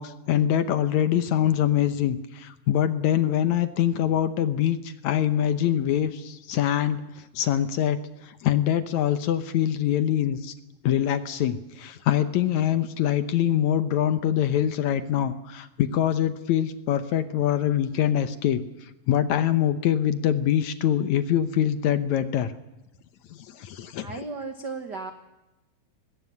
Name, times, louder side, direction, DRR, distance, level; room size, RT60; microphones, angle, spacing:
voice 1, 0.0-10.5 10.8-18.6 19.1-22.5 23.5-24.1, left 10 dB, 70° left, 12 dB, 1.9 m, -24 dB
voice 2, 24.0-25.1, right 4 dB, 85° right, 7 dB, 0.9 m, -35 dB
20.0 x 17.0 x 9.4 m, 0.99 s
omnidirectional pair, 4.2 m